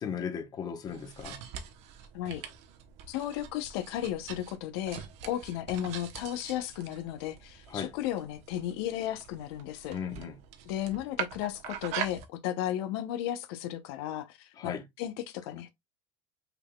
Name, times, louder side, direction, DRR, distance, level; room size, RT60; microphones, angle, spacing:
voice 1, 0.0-1.4 7.7-7.9 9.9-10.4 14.6-14.8, left 7 dB, 30° left, 1.0 m, -36 dB
sound 1, 0.8-12.2, right 9 dB, 60° right, 1.0 m, -43 dB
voice 2, 3.1-10.0 10.6-15.7, left 12 dB, 85° left, 0.8 m, -34 dB
5.8 x 3.7 x 2.3 m
cardioid pair, 155°, 13 cm